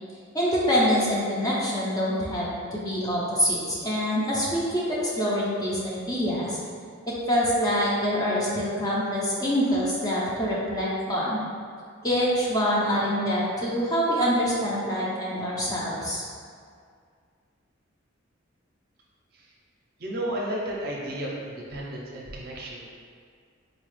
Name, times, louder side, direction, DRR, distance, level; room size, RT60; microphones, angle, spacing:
voice 1, 0.3-6.6 7.1-11.4 12.0-16.2, equal, 20° left, -6 dB, 0.6 m, -25 dB
voice 2, 20.0-22.9, right 1 dB, 50° right, -3 dB, 0.6 m, -33 dB
4.1 x 2.3 x 3.2 m, 2.1 s
head